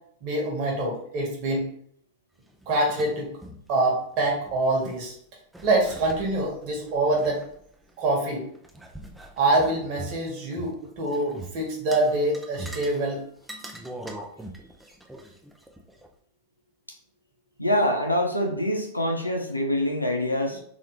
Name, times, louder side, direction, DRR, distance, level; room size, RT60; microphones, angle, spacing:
voice 1, 0.2-1.7 2.7-3.3 3.7-5.1 5.6-7.4 8.0-8.5 9.4-13.2, right 2 dB, 45° right, -1 dB, 1.5 m, -25 dB
sound 1, 2.5-3.7 4.0-4.1 4.3-5.0 5.5-8.1 8.5-10.7 11.0-11.5 11.9-13.0 13.4-16.1, right 2 dB, 5° right, 0.6 m, -42 dB
voice 2, 17.6-20.6, left 1 dB, 85° left, 2 dB, 0.7 m, -25 dB
3.8 x 3.1 x 3.2 m, 0.64 s
figure-of-eight pair, 90°, 0 cm